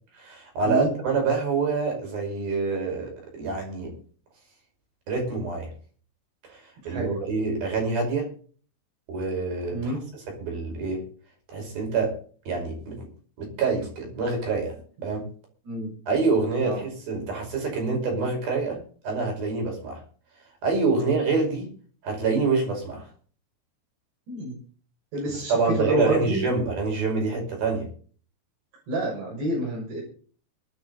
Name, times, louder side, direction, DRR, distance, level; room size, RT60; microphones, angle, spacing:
voice 1, 0.2-4.0 5.1-5.7 6.4-8.3 9.1-9.9 10.3-11.1 11.5-12.2 12.5-13.1 13.4-14.8 15.0-15.3 16.1-20.0 20.6-21.7 22.0-23.1 25.3-27.9, right 4 dB, 60° right, 2 dB, 7.1 m, -26 dB
voice 2, 6.8-7.1 9.7-10.0 15.6-15.9 16.6-16.8 24.3-24.6 25.1-26.5 28.9-30.0, right 1 dB, 85° right, -3 dB, 8.4 m, -28 dB
24.0 x 9.2 x 4.1 m, 0.43 s
omnidirectional pair, 4.7 m